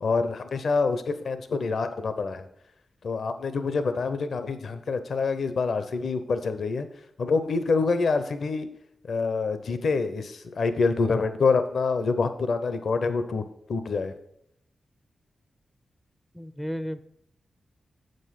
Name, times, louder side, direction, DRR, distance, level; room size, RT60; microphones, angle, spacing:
voice 1, 0.0-2.4 3.0-6.9 7.2-8.7 9.1-13.4 13.7-14.1, left 4 dB, 70° left, 10 dB, 0.6 m, -26 dB
voice 2, 16.3-17.0, equal, ahead, 13 dB, 0.4 m, -33 dB
7.7 x 5.3 x 5.7 m, 0.72 s
cardioid pair, 65°, 0 cm